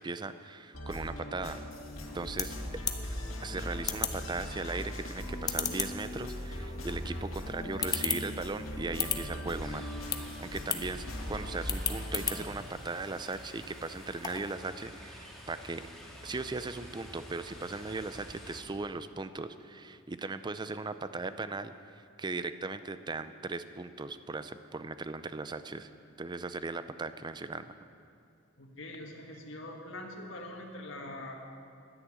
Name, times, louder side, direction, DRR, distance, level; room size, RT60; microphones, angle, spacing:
voice 1, 0.0-1.6 2.1-2.6 3.4-15.9 16.2-25.9 26.2-27.8, right 3 dB, 20° right, 12 dB, 0.5 m, -38 dB
sound 1, 0.7-12.5, left 1 dB, 85° left, 2.0 m, -39 dB
sound 2, 1.7-14.6, left 6 dB, 20° left, 0.7 m, -39 dB
sound 3, 9.5-18.6, equal, ahead, 2.2 m, -49 dB
voice 2, 28.6-31.4, left 1 dB, 65° left, 0 dB, 1.7 m, -43 dB
11.0 x 10.0 x 8.8 m, 2.5 s
head